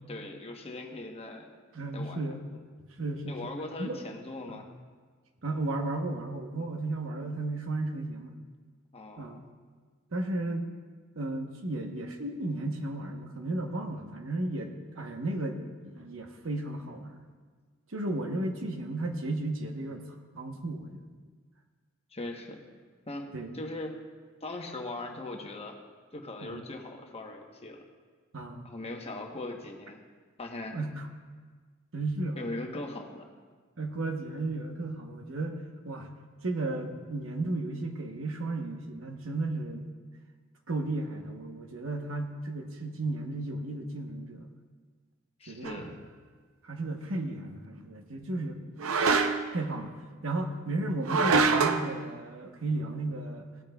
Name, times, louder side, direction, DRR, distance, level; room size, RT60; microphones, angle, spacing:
voice 1, 0.1-1.5 1.9-2.2 3.3-4.7 8.9-9.4 22.1-22.6 23.1-23.3 23.5-24.0 24.4-25.8 26.1-27.8 28.6-30.0 30.4-30.8 32.4-33.3 45.4-46.0, left 2 dB, 30° left, 2 dB, 1.0 m, -39 dB
voice 2, 1.7-2.4 3.0-3.5 3.8-4.0 4.5-4.6 5.4-8.3 9.2-9.4 10.1-10.7 11.2-17.2 17.9-20.0 20.3-21.0 23.3-23.5 26.4-26.6 28.3-28.7 30.7-31.1 31.9-32.4 33.8-36.1 36.4-39.9 40.7-44.5 45.5-45.7 46.6-48.6 49.5-49.9 50.2-53.5, right 2 dB, 70° right, 4 dB, 1.0 m, -34 dB
sound 1, 45.6-45.8 48.8-49.6 51.0-51.9, right 4 dB, 85° right, 0.6 m, -25 dB
18.0 x 8.6 x 2.3 m, 1.5 s
head